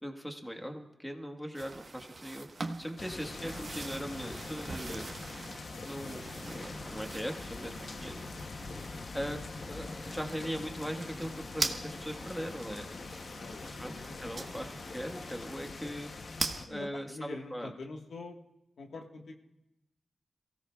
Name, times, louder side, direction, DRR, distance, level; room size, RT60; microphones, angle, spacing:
voice 1, 0.0-2.5 2.8-5.0 5.8-8.2 9.1-9.4 9.6-12.9 13.6-16.1 16.7-17.7, equal, 5° left, 4 dB, 1.4 m, -40 dB
sound 1, 1.5-12.5 13.1-13.2 14.4-14.8 15.2-15.3 15.6-15.7 16.0-16.6, right 3 dB, 50° right, 1.1 m, -41 dB
sound 2, 3.0-16.7, left 3 dB, 55° left, 0.8 m, -43 dB
voice 2, 6.0-6.3 8.0-8.3 8.7-9.0 13.4-14.2 16.7-18.4 18.8-19.5, left 3 dB, 90° left, 2 dB, 1.4 m, -46 dB
sound 3, 6.4-15.7, right 2 dB, 20° right, 0.9 m, -53 dB
27.5 x 16.5 x 2.3 m, 0.92 s
wide cardioid pair, 125°, 0 cm